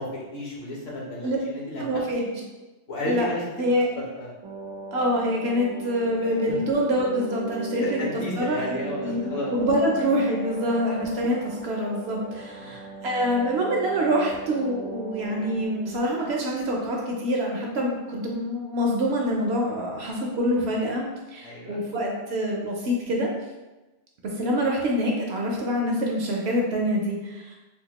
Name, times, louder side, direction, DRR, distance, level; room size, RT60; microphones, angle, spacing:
voice 1, 0.0-1.8 2.1-2.3 2.9-3.6 3.9-4.3 6.5-6.6 7.8-9.5 12.6-12.8 21.4-21.8, left 1 dB, 60° left, -4 dB, 1.0 m, -33 dB
voice 2, 1.8-2.2 3.1-3.3 3.6-3.9 4.9-8.0 8.4-23.3 24.4-27.5, equal, 65° right, -1 dB, 0.7 m, -26 dB
sound 1, 4.4-17.5 17.8-17.9, right 3 dB, 85° right, 1.0 m, -39 dB
3.5 x 2.2 x 2.9 m, 1.1 s
omnidirectional pair, 1.3 m